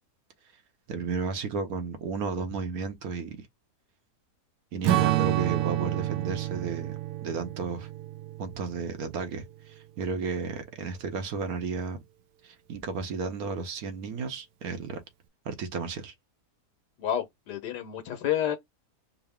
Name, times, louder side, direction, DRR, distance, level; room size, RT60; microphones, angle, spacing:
voice 1, 0.9-3.5 4.7-7.9 8.4-12.0 12.4-15.0 15.4-16.1, right 5 dB, 65° right, 1.2 m, -33 dB
Strum, 4.8-9.5, right 16 dB, 85° right, 1.2 m, -29 dB
voice 2, 17.0-18.6, left 10 dB, 85° left, 1.4 m, -29 dB
4.8 x 2.1 x 3.4 m
omnidirectional pair, 1.8 m